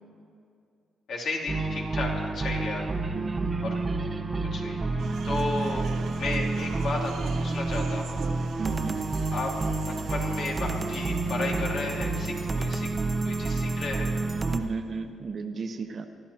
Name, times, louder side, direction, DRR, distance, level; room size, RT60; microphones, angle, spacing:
voice 1, 1.1-2.8 3.6-3.7 4.5-4.8 5.2-5.9 6.2-8.2 9.3-9.5 10.1-12.9 13.2-14.1, left 3 dB, 70° left, -2 dB, 2.7 m, -33 dB
sound 1, 1.5-14.6, right 3 dB, 25° right, 0.8 m, -29 dB
voice 2, 3.1-3.7 8.6-9.0 14.5-16.1, right 4 dB, 45° right, 6 dB, 1.0 m, -34 dB
sound 2, 5.0-13.2, right 6 dB, 75° right, 0.9 m, -43 dB
24.0 x 12.0 x 2.9 m, 2.4 s
cardioid pair, 90°, 0 cm